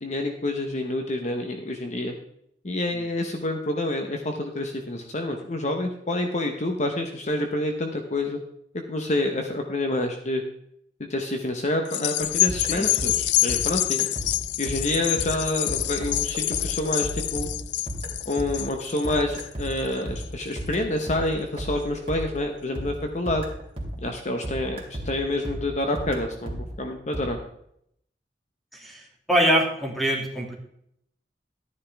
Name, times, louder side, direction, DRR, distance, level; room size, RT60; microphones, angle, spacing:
voice 1, 0.0-2.1 2.6-8.4 8.7-10.4 11.0-14.1 14.6-17.5 18.3-23.4 24.0-27.4, left 1 dB, 40° left, 4 dB, 1.0 m, -28 dB
sound 1, 11.9-20.5 21.0-21.1, left 15 dB, 80° left, 0.4 m, -27 dB
sound 2, 12.2-24.2 24.4-27.2, equal, 35° right, 2.8 m, -35 dB
voice 2, 28.7-29.0 29.3-30.5, equal, ahead, -1 dB, 2.4 m, -23 dB
12.0 x 10.0 x 3.5 m, 0.72 s
head